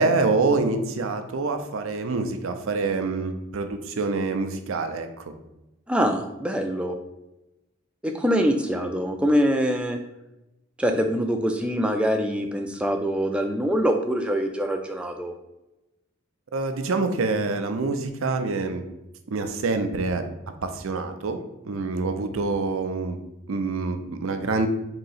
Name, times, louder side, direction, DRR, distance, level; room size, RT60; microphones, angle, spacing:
voice 1, 0.0-5.1 16.5-18.8 19.3-20.2 20.6-21.4 21.7-23.2 23.5-24.7, right 3 dB, 75° right, 7 dB, 0.5 m, -26 dB
voice 2, 5.9-7.0 8.0-10.0 10.8-15.3, equal, 5° right, 4 dB, 0.3 m, -24 dB
3.8 x 2.8 x 4.0 m, 0.94 s
head